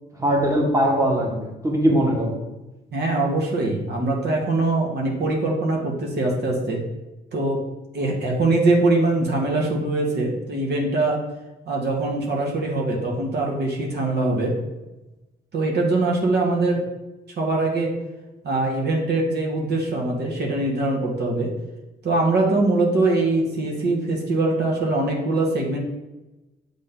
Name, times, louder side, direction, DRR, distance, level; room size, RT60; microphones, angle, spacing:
voice 1, 0.2-2.3, equal, 15° right, -1 dB, 1.5 m, -20 dB
voice 2, 2.9-6.8 7.3-7.6 7.9-11.2 11.6-14.5 15.5-16.8 17.4-17.9 18.4-21.5 22.0-25.8, right 2 dB, 55° right, -1 dB, 1.6 m, -22 dB
7.3 x 3.7 x 3.8 m, 1.0 s
cardioid pair, 90°, 20 cm